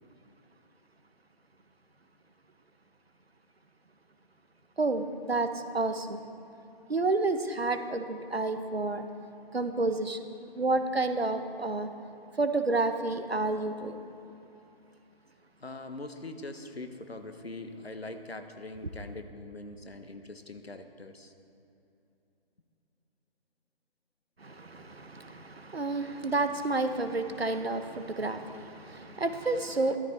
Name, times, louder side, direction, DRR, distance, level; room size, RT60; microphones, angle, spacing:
voice 1, 4.8-6.2 6.9-9.1 9.5-10.2 10.5-11.9 12.4-14.0 24.4-30.0, right 3 dB, 80° right, 8 dB, 1.3 m, -30 dB
voice 2, 15.6-21.3, left 2 dB, 80° left, 7 dB, 1.4 m, -42 dB
14.0 x 13.0 x 4.6 m, 2.9 s
figure-of-eight pair, 150°, 30 cm